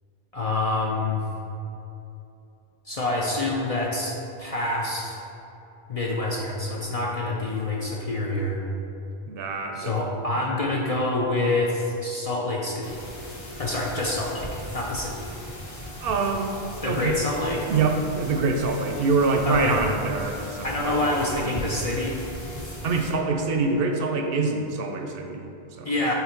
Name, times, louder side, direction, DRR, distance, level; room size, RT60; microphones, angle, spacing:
voice 1, 0.3-1.2 2.8-5.2 5.9-8.6 9.8-13.1 13.6-15.2 16.8-17.7 19.5-19.8 20.6-22.2 25.8-26.1, left 2 dB, 45° left, -2 dB, 0.5 m, -27 dB
voice 2, 9.3-9.9 10.3-10.4 16.0-16.5 16.9-17.2 17.7-21.6 22.8-25.9, right 4 dB, 65° right, 4 dB, 0.7 m, -25 dB
sound 1, 12.8-23.1, equal, 30° left, 0.9 m, -38 dB
5.8 x 3.8 x 4.4 m, 2.9 s
omnidirectional pair, 1.1 m